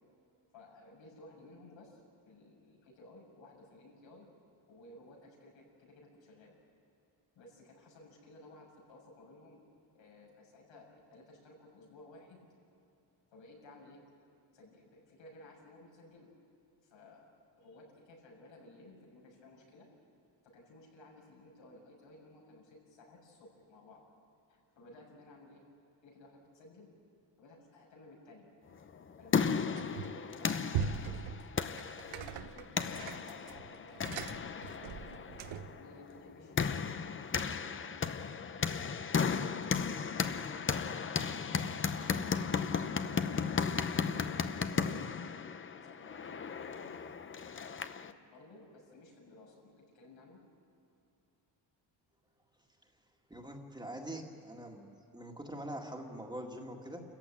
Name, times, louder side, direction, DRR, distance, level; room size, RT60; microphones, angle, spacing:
voice 1, 0.5-4.3 4.7-6.5 7.3-9.6 9.9-12.5 13.3-14.0 14.5-16.3 16.8-17.3 17.5-19.9 20.4-24.0 24.5-25.6 26.0-26.9 27.4-28.5 29.2-31.2 32.0-35.3 35.7-39.2 39.7-42.3 43.0-45.4 45.7-46.9 48.0-50.4, left 2 dB, 85° left, -1 dB, 6.8 m, -56 dB
sound 1, 28.9-48.1, left 6 dB, 30° left, 0.7 m, -35 dB
sound 2, 29.8-30.3 30.7-35.8, right 7 dB, 90° right, 1.1 m, -40 dB
voice 2, 53.3-54.9 55.1-57.0, right 1 dB, 10° right, 1 dB, 2.0 m, -43 dB
28.5 x 15.0 x 9.1 m, 2.8 s
cardioid pair, 140°, 44 cm